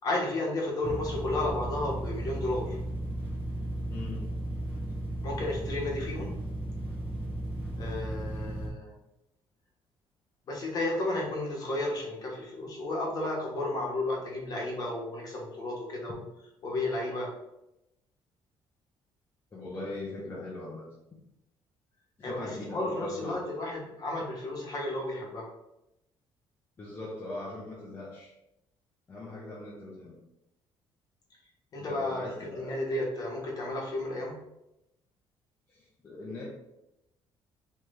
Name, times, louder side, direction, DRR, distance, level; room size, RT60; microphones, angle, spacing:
voice 1, 0.0-2.8 5.2-6.3 7.8-8.9 10.5-16.2 16.6-17.3 22.2-25.5 31.7-34.4, left 2 dB, 40° left, -2 dB, 1.2 m, -33 dB
sound 1, 0.8-8.7, right 1 dB, 15° right, 1.0 m, -35 dB
voice 2, 3.9-4.2 19.5-20.8 22.2-23.4 26.8-28.3 29.1-30.1 31.7-32.8 35.7-36.5, left 2 dB, 25° left, -6 dB, 0.8 m, -40 dB
3.9 x 3.1 x 3.3 m, 0.88 s
cardioid pair, 155°, 10 cm